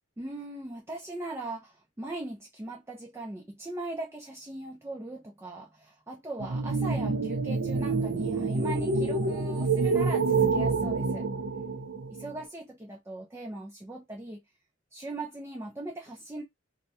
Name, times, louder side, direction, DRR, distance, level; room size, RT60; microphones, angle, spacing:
voice 1, 0.2-11.3 12.2-14.4 14.9-16.4, right 2 dB, 15° right, 0.4 m, -39 dB
sound 1, 6.4-12.3, right 4 dB, 70° right, 0.5 m, -27 dB
2.2 x 2.0 x 2.7 m
head